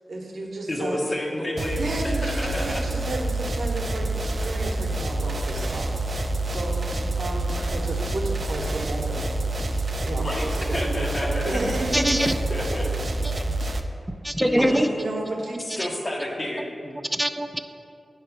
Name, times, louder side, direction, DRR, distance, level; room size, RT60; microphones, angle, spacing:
voice 1, 0.1-1.0 1.8-9.3 9.5-12.1 14.6-15.6, right 2 dB, 80° right, -1 dB, 1.1 m, -32 dB
voice 2, 0.7-3.0 7.5-7.9 10.2-11.7 12.5-13.0 14.4-15.0 15.6-16.9, left 1 dB, 45° left, -1 dB, 1.2 m, -31 dB
sound 1, 1.6-13.8, right 2 dB, 55° right, 0.5 m, -27 dB
voice 3, 11.9-12.4 13.2-13.4 14.2-14.9 17.1-17.6, equal, 5° right, 7 dB, 0.5 m, -23 dB
9.0 x 3.2 x 5.8 m, 2.5 s
cardioid pair, 50°, 0 cm